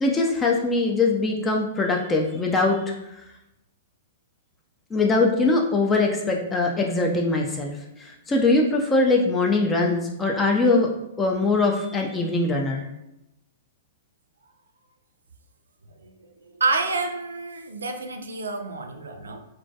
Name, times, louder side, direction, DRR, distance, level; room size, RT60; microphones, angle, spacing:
voice 1, 0.0-2.9 4.9-7.7 8.0-10.9 11.2-12.9, left 3 dB, 15° left, 0 dB, 0.3 m, -22 dB
voice 2, 16.4-19.4, right 3 dB, 85° right, 5 dB, 0.3 m, -28 dB
2.2 x 2.1 x 2.7 m, 0.87 s
hypercardioid pair, 115°, 0 cm